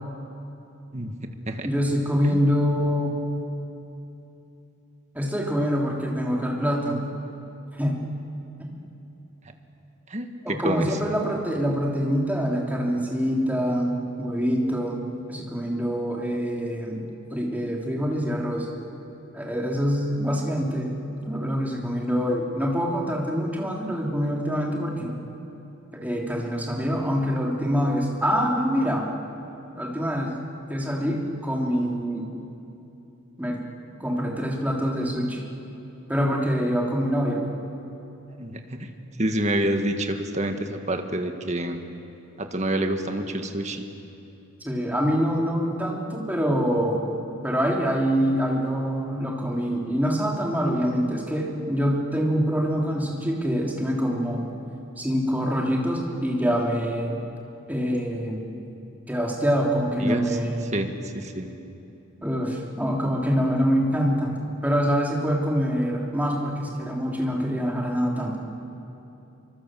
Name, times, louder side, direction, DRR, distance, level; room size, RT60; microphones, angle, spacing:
voice 1, 1.6-3.2 5.1-7.0 7.8-8.0 8.6-8.7 10.4-15.0 15.3-17.0 17.3-18.7 19.3-21.0 21.2-25.1 25.9-29.1 29.7-30.4 30.7-32.2 33.4-33.6 34.0-35.4 36.1-37.4 44.6-47.0 47.4-54.4 55.0-57.2 57.7-58.5 59.1-60.7 62.2-68.4, equal, 10° right, -1 dB, 3.2 m, -25 dB
voice 2, 10.1-10.9 38.4-38.9 39.2-41.8 42.4-43.9 60.0-60.4 60.7-60.9 61.1-61.5, right 1 dB, 30° right, 6 dB, 1.8 m, -27 dB
27.5 x 25.0 x 7.7 m, 2.9 s
head